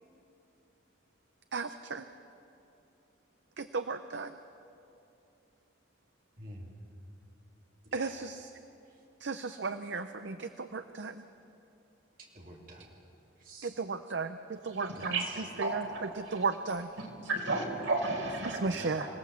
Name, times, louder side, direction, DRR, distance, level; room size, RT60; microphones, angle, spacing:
voice 1, 1.5-2.0 3.6-4.3 7.9-8.5 9.2-11.2 13.6-15.2 15.6-15.8 16.2-16.9 18.4-19.1, right 4 dB, 65° right, 9 dB, 0.7 m, -35 dB
voice 2, 6.4-6.7 7.9-8.1 12.2-12.9 13.4-13.8 14.9-15.0 18.6-19.0, right 1 dB, 45° right, -2 dB, 3.4 m, -48 dB
voice 3, 14.7-16.4 17.0-19.0, right 2 dB, 85° right, 1 dB, 4.4 m, -34 dB
26.0 x 17.5 x 7.4 m, 2.8 s
head